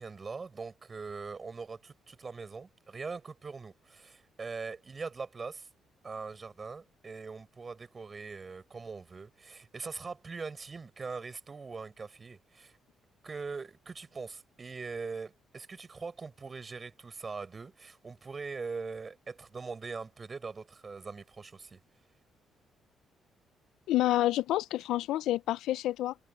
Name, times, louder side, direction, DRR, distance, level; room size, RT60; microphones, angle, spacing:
voice 1, 0.0-5.7 6.0-12.8 13.2-21.8, right 4 dB, 35° right, 5.7 m, -42 dB
voice 2, 23.9-26.1, left 14 dB, 85° left, 0.4 m, -28 dB
cardioid pair, 90°, 0 cm